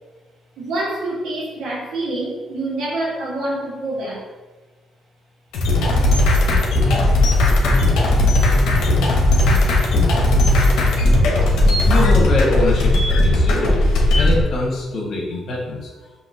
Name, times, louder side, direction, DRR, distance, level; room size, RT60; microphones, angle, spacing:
voice 1, 0.6-4.3, right 2 dB, 80° right, -4 dB, 1.5 m, -26 dB
sound 1, 5.5-14.4, left 1 dB, 85° left, 1.0 m, -16 dB
sound 2, 6.5-13.4, left 2 dB, 15° left, 0.5 m, -27 dB
voice 2, 11.9-15.9, left 2 dB, 70° left, -3 dB, 1.4 m, -24 dB
5.8 x 2.9 x 2.8 m, 1.3 s
cardioid pair, 90°, 0 cm